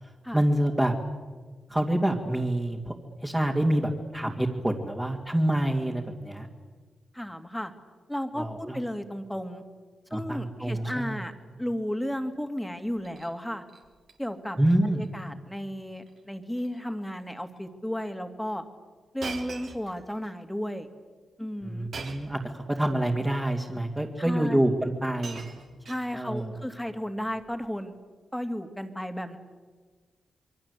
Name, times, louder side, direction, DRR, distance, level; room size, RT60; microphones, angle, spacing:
voice 1, 0.3-0.9 1.7-2.9 3.2-6.5 8.4-8.8 10.1-11.2 14.6-15.0 21.6-25.4 26.1-26.6, right 1 dB, 10° right, -1 dB, 2.6 m, -27 dB
voice 2, 7.1-7.7 8.1-9.6 10.1-11.3 11.6-13.6 14.2-14.6 14.8-18.6 19.1-20.9 21.4-21.9 24.2-24.6 25.8-27.9 28.3-29.4, equal, 5° left, 7 dB, 2.5 m, -33 dB
Shatter, 12.9-13.3 13.7-14.2 14.5-14.7 15.0-15.1 16.0-16.2 16.5-16.8 17.6-17.7 19.2-20.3 21.9-22.4 23.4-23.5 24.6-24.7 24.9-26.4 27.4-27.7, right 4 dB, 70° right, 3.6 m, -43 dB
27.0 x 23.0 x 8.4 m, 1.5 s
cardioid pair, 85°, 0 cm